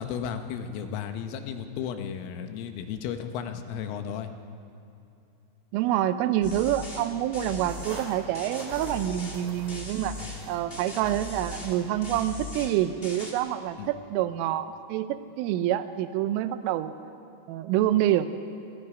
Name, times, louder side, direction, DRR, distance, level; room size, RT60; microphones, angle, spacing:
voice 1, 0.0-4.3 10.2-10.3 13.8-13.9, left 8 dB, 85° left, 7 dB, 3.7 m, -34 dB
voice 2, 5.7-10.2 10.5-16.9 17.5-18.3, right 12 dB, 85° right, 10 dB, 3.3 m, -27 dB
sound 1, 6.4-7.1 7.3-8.1 8.3-9.4 9.7-10.4 10.7-11.8 12.0-12.7 13.0-13.3, left 3 dB, 20° left, 1.7 m, -39 dB
sound 2, 7.6-12.7, right 4 dB, 55° right, 3.9 m, -46 dB
27.0 x 23.0 x 5.1 m, 2.7 s
omnidirectional pair, 5.7 m